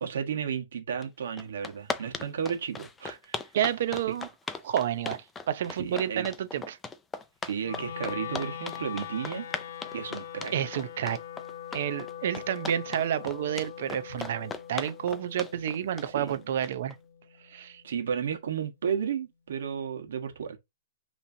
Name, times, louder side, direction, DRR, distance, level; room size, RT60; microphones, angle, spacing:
voice 1, 0.0-3.4 4.1-4.2 5.8-6.3 7.4-9.5 9.9-10.5 16.1-16.4 17.8-20.6, right 7 dB, 70° right, 1.3 m, -33 dB
sound 1, 1.0-1.1 1.4-16.9, left 4 dB, 10° left, 0.4 m, -37 dB
voice 2, 3.5-4.3 4.6-6.8 10.5-11.2 11.7-16.9 17.5-17.8, right 10 dB, 50° right, 0.7 m, -30 dB
Wind instrument woodwind instrument, 7.6-17.8, left 9 dB, 55° left, 0.8 m, -42 dB
5.6 x 3.1 x 2.7 m
hypercardioid pair, 165°, 0 cm